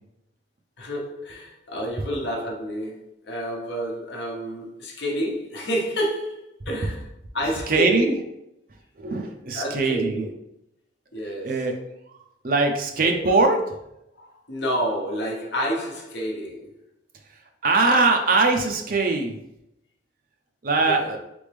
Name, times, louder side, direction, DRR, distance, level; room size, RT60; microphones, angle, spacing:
voice 1, 0.8-7.1 7.3-8.2 9.5-10.3 11.1-11.6 13.0-13.3 14.2-16.7 20.8-21.2, equal, 65° left, -1 dB, 1.0 m, -29 dB
voice 2, 7.7-8.2 9.0-10.3 11.4-11.8 12.1-12.2 12.4-13.6 17.6-19.4 20.6-21.2, right 3 dB, 50° right, 4 dB, 0.6 m, -21 dB
4.2 x 3.4 x 3.4 m, 0.83 s
head